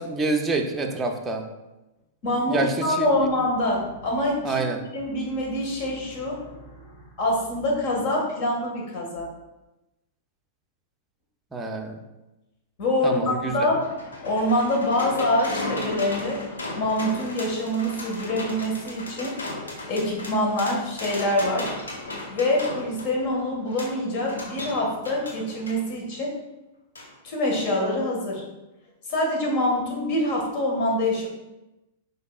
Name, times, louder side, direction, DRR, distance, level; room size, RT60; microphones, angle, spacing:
voice 1, 0.0-1.4 2.5-3.1 4.4-4.8 11.5-12.0 13.0-13.8, right 3 dB, 15° right, 2 dB, 0.6 m, -27 dB
voice 2, 2.2-4.6 4.9-9.3 12.8-13.9 14.2-16.4 16.8-19.4 19.9-21.7 22.3-26.3 27.2-28.4 29.1-31.3, left 1 dB, 50° left, -1 dB, 1.6 m, -25 dB
sound 1, 13.3-25.8 27.0-27.1 27.4-27.5, left 2 dB, 80° left, 1.0 m, -36 dB
5.2 x 4.0 x 2.3 m, 0.99 s
figure-of-eight pair, 100°, 0 cm